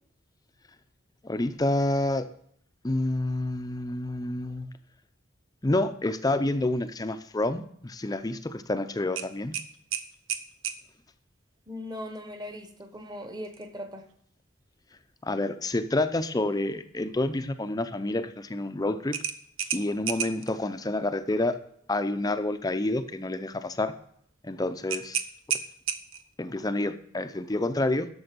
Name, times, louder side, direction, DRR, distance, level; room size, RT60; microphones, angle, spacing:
voice 1, 1.2-2.3 2.8-4.7 5.6-9.6 15.2-19.2 19.7-21.6 21.9-23.9 24.4-25.2 26.4-28.1, left 2 dB, 20° left, 10 dB, 0.5 m, -28 dB
sound 1, 9.2-10.8 13.4-13.7 14.1-14.2 19.1-20.5 24.9-26.3, right 8 dB, 85° right, 0.8 m, -32 dB
voice 2, 11.7-14.1, left 1 dB, 20° right, 8 dB, 1.1 m, -39 dB
12.0 x 6.9 x 5.2 m, 0.69 s
head